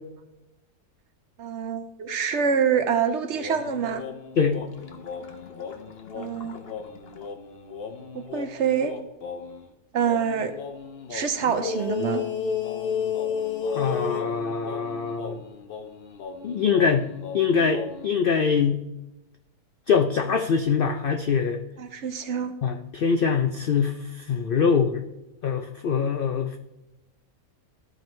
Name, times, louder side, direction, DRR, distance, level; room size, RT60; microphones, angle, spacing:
voice 1, 1.4-4.1 6.1-6.6 8.1-9.0 9.9-10.5 11.1-12.2 21.8-22.5, right 7 dB, 60° right, 8 dB, 0.8 m, -26 dB
sound 1, 3.3-9.6 10.0-18.1, left 6 dB, 50° left, 0.9 m, -34 dB
voice 2, 13.7-15.4 16.4-17.1 17.3-18.8 19.9-21.6 22.6-24.0 24.3-25.0 25.4-26.6, left 6 dB, 80° left, 5 dB, 0.4 m, -23 dB
13.5 x 4.5 x 3.2 m, 0.98 s
omnidirectional pair, 1.6 m